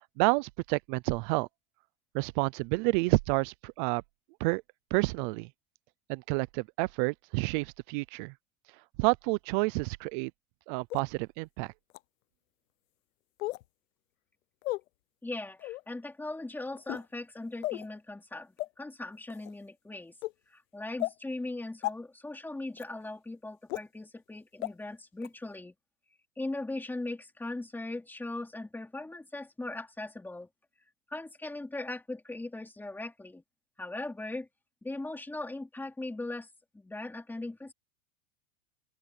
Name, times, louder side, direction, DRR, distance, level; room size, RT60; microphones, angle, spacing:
voice 1, 0.0-1.5 2.1-4.0 4.4-4.6 4.9-5.5 6.1-8.3 9.0-10.3 10.7-11.7, right 26 dB, 40° right, 0.5 m, -29 dB
sound 1, 10.9-11.0 11.9-12.0 13.4-13.6 14.6-14.8 15.6-15.8 16.8-17.1 17.6-17.9 18.6-18.7 19.3-19.5 20.2-20.3 21.0-21.1 21.8-21.9 22.8-22.9 23.7-23.8 24.6-24.7 25.2-25.3, left 18 dB, 80° left, 0.8 m, -34 dB
voice 2, 15.2-20.1 20.5-25.7 26.4-30.5 31.1-33.4 33.8-34.5 34.8-36.5 36.7-37.7, left 2 dB, 5° left, 2.8 m, -39 dB
open air
supercardioid pair, 155°, 39 cm